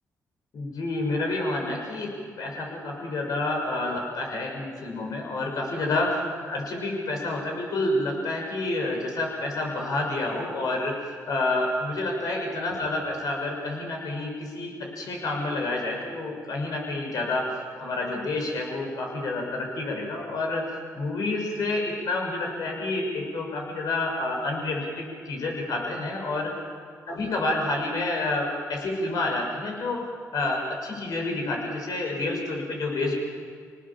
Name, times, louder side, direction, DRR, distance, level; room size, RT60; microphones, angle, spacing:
voice 1, 0.5-2.1 2.4-6.2 6.4-10.9 11.3-17.5 17.8-20.6 20.9-26.5 27.1-30.0 30.3-33.1, left 2 dB, 65° left, 1 dB, 6.7 m, -29 dB
29.0 x 19.0 x 7.4 m, 2.1 s
supercardioid pair, 65°, 7 cm